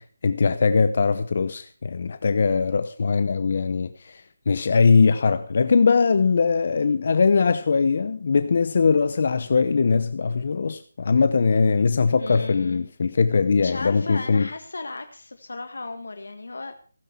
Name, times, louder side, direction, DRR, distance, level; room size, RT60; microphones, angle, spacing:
voice 1, 0.0-14.5, left 5 dB, 50° left, 0.8 m, -21 dB
voice 2, 12.2-12.9 13.6-16.8, left 3 dB, 75° left, 1.6 m, -35 dB
16.0 x 9.2 x 5.7 m
figure-of-eight pair, 160°, 0 cm